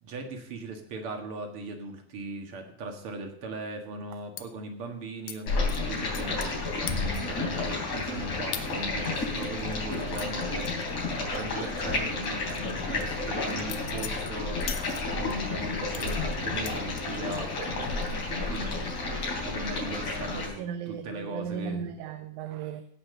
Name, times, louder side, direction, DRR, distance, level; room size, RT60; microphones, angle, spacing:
voice 1, 0.0-6.5 6.8-14.9 15.2-21.9, right 2 dB, 50° right, 4 dB, 2.4 m, -39 dB
sound 1, 4.4-4.5 5.3-5.4 5.7-6.6 6.9-7.4 7.8-7.9 8.5-8.7 9.1-11.4 11.6-11.8 12.2-15.4 15.9-17.4 17.8-18.3 18.5-18.9, left 10 dB, 70° left, 1.8 m, -41 dB
Stream, 5.5-20.5, left 3 dB, 90° left, 5.1 m, -31 dB
voice 2, 10.0-10.5 12.3-12.4 20.4-22.8, right 7 dB, 85° right, 9 dB, 2.2 m, -37 dB
16.5 x 5.7 x 6.7 m, 0.65 s
omnidirectional pair, 3.3 m